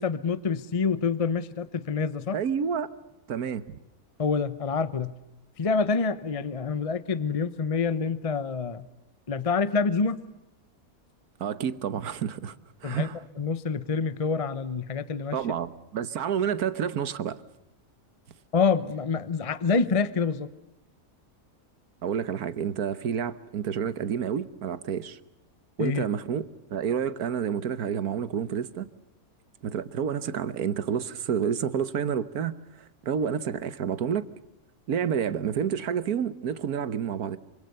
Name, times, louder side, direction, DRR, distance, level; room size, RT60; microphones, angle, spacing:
voice 1, 0.0-2.4 4.2-5.1 5.6-8.9 9.3-10.2 12.8-13.1 13.4-15.4 18.5-20.5 25.8-26.0, left 5 dB, 30° left, 0.8 m, -27 dB
voice 2, 2.3-2.9 3.3-3.8 11.4-12.6 12.8-13.2 15.3-17.4 22.0-25.2 25.8-28.9 29.6-34.2 34.9-37.4, right 8 dB, 90° right, 1.6 m, -29 dB
27.0 x 25.5 x 6.7 m
omnidirectional pair, 1.5 m